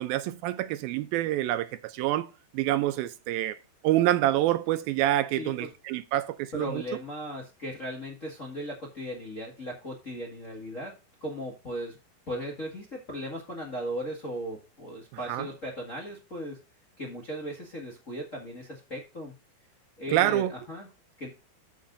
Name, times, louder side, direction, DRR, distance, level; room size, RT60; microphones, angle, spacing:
voice 1, 0.0-3.6 3.8-6.8 15.3-15.5 20.1-20.5, right 14 dB, 80° right, 2.3 m, -27 dB
voice 2, 6.5-10.9 11.2-12.0 12.3-16.6 17.0-19.3 20.0-20.9 21.2-21.3, equal, 30° left, 1.4 m, -37 dB
14.0 x 6.4 x 2.6 m
omnidirectional pair, 4.4 m